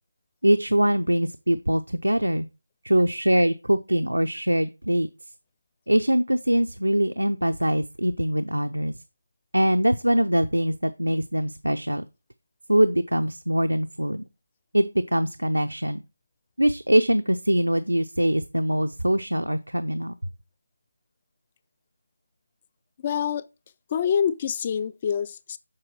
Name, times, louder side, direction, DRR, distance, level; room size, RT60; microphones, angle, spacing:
voice 1, 0.4-2.5 2.8-5.1 5.9-8.9 9.5-12.0 12.7-14.2 14.7-16.0 16.6-20.1, right 1 dB, 85° right, 0.5 m, -23 dB
voice 2, 23.0-23.5 23.9-25.6, left 8 dB, 25° left, 0.3 m, -26 dB
7.6 x 4.5 x 4.4 m
figure-of-eight pair, 160°, 0 cm